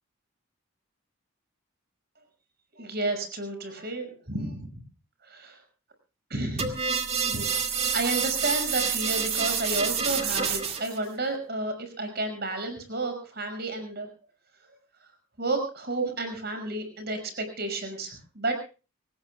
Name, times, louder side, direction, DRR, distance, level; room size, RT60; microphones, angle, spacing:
voice 1, 2.8-4.6 5.3-5.6 6.3-6.9 7.3-14.1 15.4-18.5, right 2 dB, 45° right, 7 dB, 5.9 m, -31 dB
sound 1, 6.6-11.0, right 6 dB, 30° right, 2.1 m, -28 dB
25.5 x 19.0 x 2.3 m, 0.33 s
head